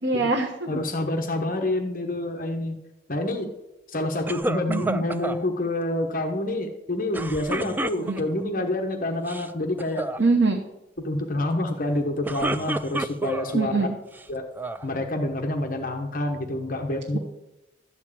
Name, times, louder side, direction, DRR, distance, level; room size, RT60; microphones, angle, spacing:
voice 1, 0.0-0.8 4.7-5.0 8.0-8.2 10.2-10.6 13.5-13.9, right 3 dB, 70° right, 2 dB, 1.1 m, -23 dB
voice 2, 0.7-2.8 3.1-3.5 3.9-10.1 11.0-13.9 14.3-14.5 14.8-17.2, left 1 dB, 45° left, 4 dB, 1.0 m, -27 dB
sound 1, 4.3-5.4 7.1-8.4 9.1-9.5 9.8-10.2 12.0-13.5 14.1-14.9, right 2 dB, 10° right, 0.3 m, -30 dB
13.0 x 4.6 x 8.7 m, 0.97 s
head